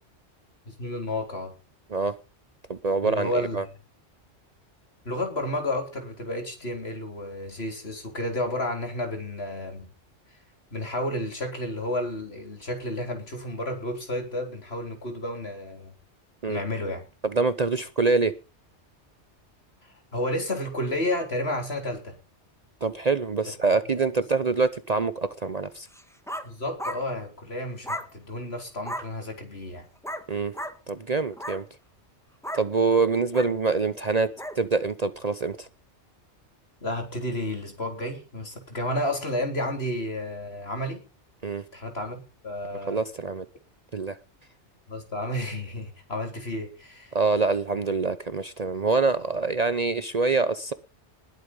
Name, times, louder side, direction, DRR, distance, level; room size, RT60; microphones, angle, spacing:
voice 1, 0.7-1.5 3.0-3.6 5.1-9.9 10.7-15.9 16.5-17.0 20.1-22.2 23.9-24.1 26.4-29.8 36.8-41.0 41.7-43.0 44.9-47.2, left 1 dB, 60° left, 4 dB, 4.1 m, -31 dB
voice 2, 2.7-3.6 16.4-16.6 17.2-18.3 22.8-25.9 30.3-30.5 30.9-31.6 32.5-35.7 41.4-41.6 42.9-43.4 43.9-44.2 47.1-50.7, right 4 dB, 40° right, 14 dB, 0.8 m, -25 dB
sound 1, 25.9-26.5 26.8-27.0 27.8-28.1 28.8-29.1 30.0-30.3 30.5-30.8 31.3-31.6 32.4-32.7 33.3-33.5 34.4-34.6, equal, ahead, 1.6 m, -34 dB
20.0 x 8.1 x 5.4 m, 0.33 s
omnidirectional pair, 1.2 m